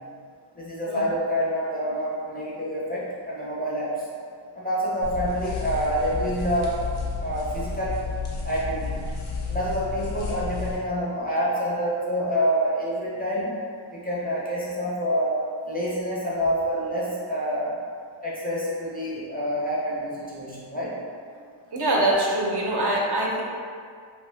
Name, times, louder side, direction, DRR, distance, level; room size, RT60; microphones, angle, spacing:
voice 1, 0.6-4.0 4.5-6.8 7.2-8.0 8.4-9.0 9.4-13.5 13.9-17.7 18.2-20.9, equal, 20° left, -7 dB, 0.4 m, -27 dB
sound 1, 5.0-10.8, left 4 dB, 90° left, 0.7 m, -32 dB
voice 2, 21.7-23.4, right 1 dB, 55° right, -3 dB, 0.5 m, -23 dB
2.7 x 2.2 x 3.1 m, 2.2 s
wide cardioid pair, 130°, 49 cm